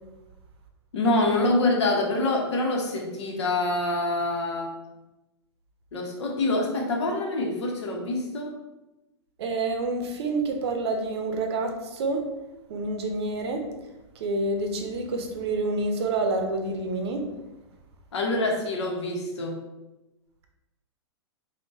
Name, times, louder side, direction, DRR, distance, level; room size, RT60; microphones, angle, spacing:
voice 1, 0.9-4.7 5.9-8.5 18.1-19.6, left 2 dB, 75° left, 1 dB, 0.8 m, -26 dB
voice 2, 9.4-12.3 12.7-13.7 14.1-17.3, right 2 dB, 65° right, 4 dB, 0.6 m, -28 dB
3.7 x 2.2 x 2.5 m, 1.0 s
hypercardioid pair, 110°, 15 cm